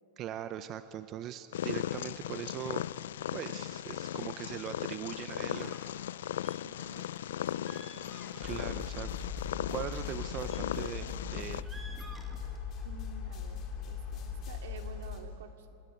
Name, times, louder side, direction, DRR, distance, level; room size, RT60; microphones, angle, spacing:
voice 1, 0.2-2.8 3.3-5.7 8.4-9.1 9.7-11.7, right 11 dB, 30° right, 12 dB, 0.7 m, -40 dB
Purr, 1.5-11.6, left 11 dB, 80° left, 0.5 m, -37 dB
sound 1, 5.5-6.0 6.4-7.2 7.5-8.7 9.1-9.3 10.0-11.1 11.5-12.8, right 2 dB, 10° right, 2.1 m, -53 dB
voice 2, 6.6-7.0 7.5-9.1 12.8-15.7, right 5 dB, 75° right, 6 dB, 2.5 m, -51 dB
sound 2, 8.4-15.2, left 6 dB, 30° left, 3.6 m, -40 dB
26.0 x 19.5 x 9.1 m, 2.8 s
supercardioid pair, 155°, 0 cm